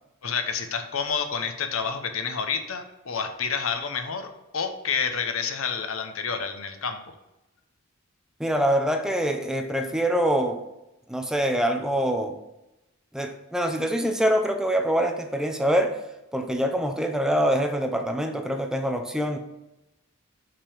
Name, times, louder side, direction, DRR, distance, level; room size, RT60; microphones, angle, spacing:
voice 1, 0.2-7.1, left 6 dB, 70° left, 7 dB, 0.8 m, -29 dB
voice 2, 8.4-10.6 11.1-12.4 13.1-16.0 16.3-19.4, equal, 5° right, 5 dB, 0.5 m, -24 dB
5.9 x 5.2 x 5.0 m, 0.94 s
head